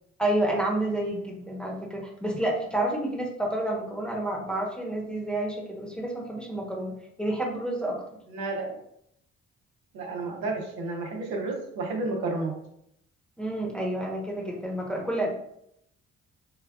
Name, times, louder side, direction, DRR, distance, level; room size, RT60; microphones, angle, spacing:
voice 1, 0.2-8.0 13.4-15.3, right 1 dB, 5° left, -2 dB, 1.0 m, -29 dB
voice 2, 8.3-8.7 9.9-12.5, right 3 dB, 75° right, -1 dB, 0.8 m, -31 dB
3.7 x 2.2 x 2.3 m, 0.74 s
hypercardioid pair, 50°, 36 cm